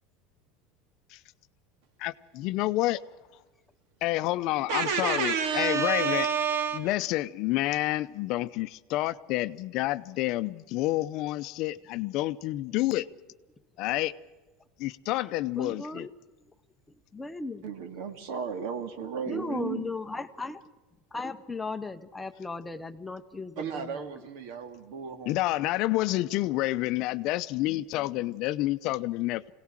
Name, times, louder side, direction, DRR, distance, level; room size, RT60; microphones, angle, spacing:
voice 1, 2.0-3.0 4.0-6.3 6.7-13.1 13.8-14.1 14.8-16.1 25.3-29.5, left 17 dB, 50° left, 0.7 m, -29 dB
voice 2, 4.7-6.9 17.6-19.9 23.6-25.3, right 7 dB, 65° right, 2.1 m, -31 dB
voice 3, 15.5-16.1 17.1-17.7 19.3-20.6 21.1-24.3, left 3 dB, 10° left, 0.7 m, -36 dB
25.0 x 18.0 x 7.5 m
supercardioid pair, 160°, 0 cm